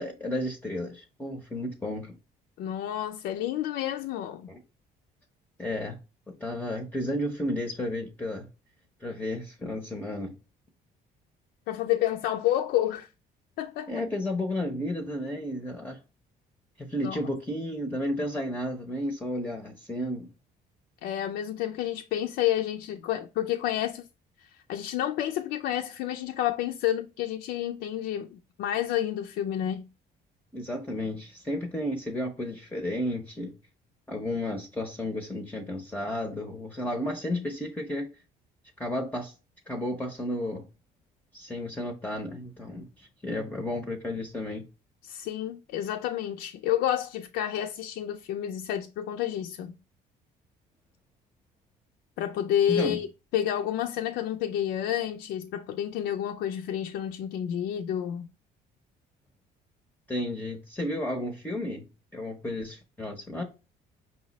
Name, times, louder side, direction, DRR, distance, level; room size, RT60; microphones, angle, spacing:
voice 1, 0.0-2.2 4.5-4.6 5.6-6.0 6.3-8.5 9.0-10.3 13.9-16.0 16.8-20.3 30.5-33.5 34.1-38.1 38.8-39.3 39.7-40.7 41.3-44.6 52.7-53.0 60.1-63.4, left 1 dB, 10° left, 0.6 m, -32 dB
voice 2, 2.6-4.5 11.7-13.1 13.6-14.0 17.0-17.2 21.0-24.1 24.4-29.9 45.0-49.8 52.2-53.1 53.3-58.3, left 11 dB, 75° left, 0.4 m, -30 dB
5.5 x 2.0 x 3.8 m
cardioid pair, 110°, 17 cm